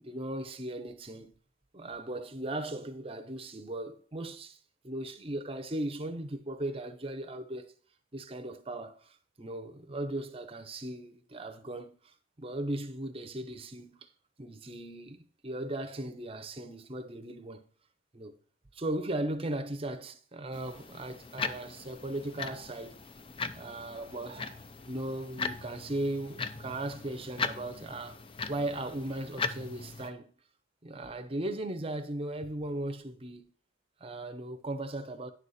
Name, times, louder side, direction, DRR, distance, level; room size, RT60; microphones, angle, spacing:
voice 1, 0.0-1.4 1.7-4.6 4.8-7.7 8.1-14.1 14.4-17.7 18.1-18.4 18.7-23.0 23.5-28.2 28.5-30.3 30.8-33.5 34.0-35.3, right 1 dB, 25° right, 0.7 m, -37 dB
sound 1, 20.5-30.1, left 4 dB, 25° left, 0.4 m, -39 dB
10.5 x 4.2 x 6.4 m
head